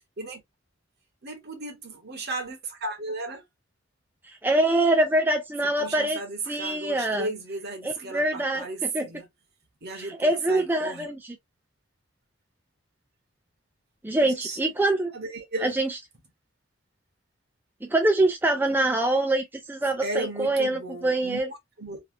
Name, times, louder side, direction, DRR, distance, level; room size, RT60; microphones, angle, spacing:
voice 1, 1.2-3.4 5.6-9.3 9.8-11.1 14.2-14.6 15.1-15.7 20.0-22.0, right 2 dB, 55° right, 1.3 m, -35 dB
voice 2, 4.2-6.2 6.5-7.3 7.8-9.1 9.9-11.4 14.0-15.1 15.6-16.0 17.8-21.5, right 1 dB, 10° right, 0.4 m, -24 dB
3.3 x 2.8 x 2.7 m
head